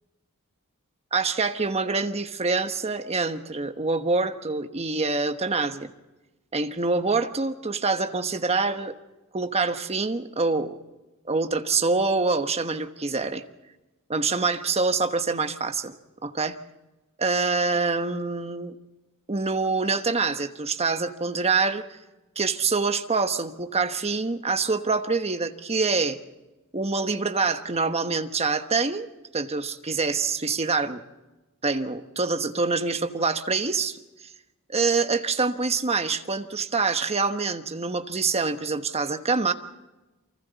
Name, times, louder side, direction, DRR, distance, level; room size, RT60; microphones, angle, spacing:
voice 1, 1.1-5.9 6.5-8.9 9.3-10.8 11.3-13.4 14.1-15.9 16.2-16.6 17.2-18.7 19.3-21.9 22.4-26.2 26.7-29.1 29.3-31.0 31.6-34.0 34.7-39.5, right 4 dB, 30° right, 8 dB, 1.2 m, -25 dB
29.5 x 24.5 x 4.1 m, 1.1 s
head